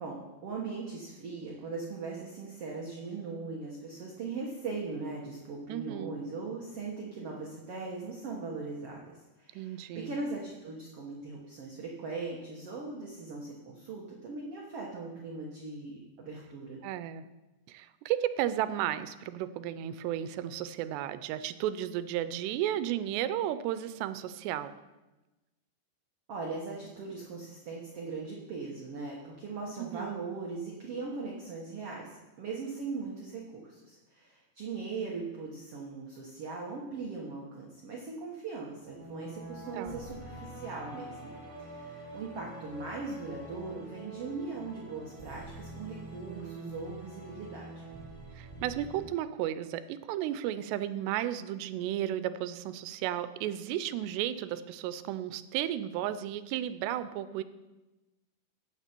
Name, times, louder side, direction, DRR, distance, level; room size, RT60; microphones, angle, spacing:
voice 1, 0.0-16.8 26.3-41.3 41.6-47.8, right 4 dB, 70° right, -2 dB, 1.4 m, -40 dB
voice 2, 5.7-6.2 9.6-10.1 16.8-17.2 17.7-24.7 29.8-30.2 39.7-40.0 46.3-46.9 48.4-57.4, right 12 dB, 90° right, 13 dB, 2.8 m, -34 dB
sound 1, 38.7-49.0, right 1 dB, 10° right, 2.2 m, -46 dB
15.0 x 8.8 x 4.5 m, 1.1 s
omnidirectional pair, 4.8 m